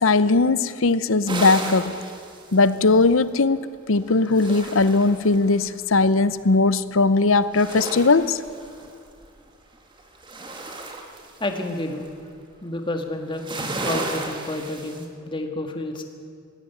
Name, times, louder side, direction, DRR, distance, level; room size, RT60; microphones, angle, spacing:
voice 1, 0.0-1.9 2.5-8.4, left 3 dB, 70° left, 15 dB, 0.7 m, -19 dB
sound 1, 1.3-3.2 4.0-5.7 7.4-9.3 9.7-12.1 13.3-15.0, right 2 dB, 20° right, 1.9 m, -34 dB
voice 2, 11.4-12.0 12.6-13.4 13.8-16.0, left 1 dB, 25° left, 4 dB, 1.8 m, -29 dB
19.0 x 16.5 x 9.3 m, 2.4 s
head